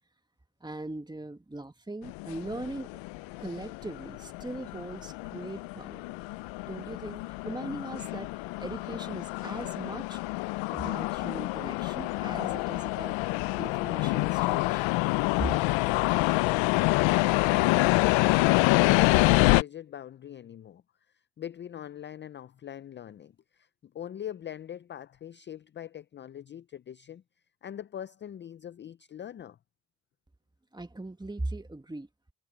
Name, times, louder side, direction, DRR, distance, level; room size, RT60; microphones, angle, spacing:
voice 1, 0.6-2.9 3.4-6.1 6.6-8.3 8.6-10.2 10.7-13.2 13.6-14.9 15.4-15.6 30.7-32.1, right 2 dB, 10° right, 1.8 m, -39 dB
sound 1, 2.1-19.6, left 22 dB, 85° left, 0.6 m, -27 dB
voice 2, 15.6-18.5 18.8-20.8 21.4-23.7 23.9-27.2 27.6-29.6, left 10 dB, 30° left, 0.4 m, -42 dB
cardioid pair, 85°, 44 cm